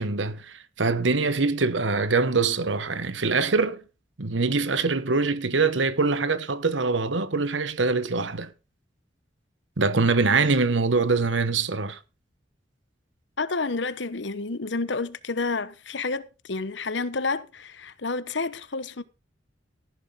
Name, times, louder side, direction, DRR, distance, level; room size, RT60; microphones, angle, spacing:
voice 1, 0.0-3.8 4.2-8.5 9.8-12.0, right 4 dB, 80° right, 1.1 m, -24 dB
voice 2, 13.4-19.0, left 3 dB, 70° left, 1.1 m, -30 dB
14.5 x 11.0 x 3.7 m
head